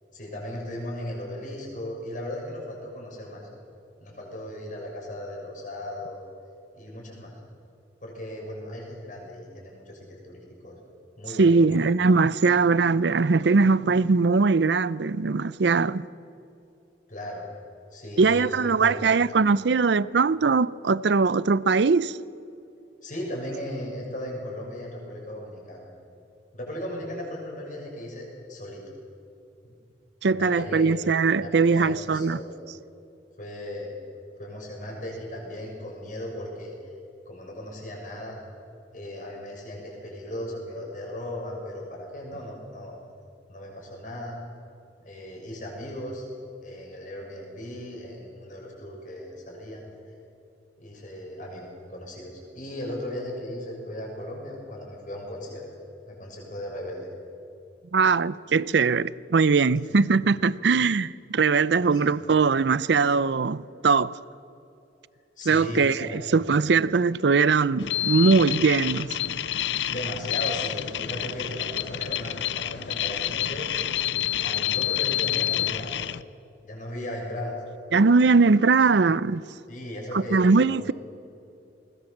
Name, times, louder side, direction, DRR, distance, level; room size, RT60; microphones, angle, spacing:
voice 1, 0.1-3.4 4.0-6.3 6.7-7.3 8.0-10.8 11.2-11.9 17.1-17.4 17.9-18.9 23.0-25.9 26.5-28.8 29.6-29.7 30.3-30.9 31.4-32.6 33.4-34.0 34.4-36.7 37.2-38.4 38.9-43.0 43.5-44.4 45.0-46.3 46.6-49.8 50.8-55.7 56.1-57.1 59.9-60.0 61.8-62.1 65.4-66.4 69.8-73.8 74.4-76.0 76.6-77.5 79.7-80.9, left 1 dB, 45° left, 6.6 m, -37 dB
voice 2, 11.4-16.0 18.2-22.2 30.2-32.4 57.9-64.1 65.5-69.2 77.9-79.4 80.1-80.9, right 4 dB, 65° right, 0.5 m, -21 dB
sound 1, 67.8-76.2, left 12 dB, 75° left, 0.6 m, -28 dB
20.5 x 20.0 x 7.3 m
head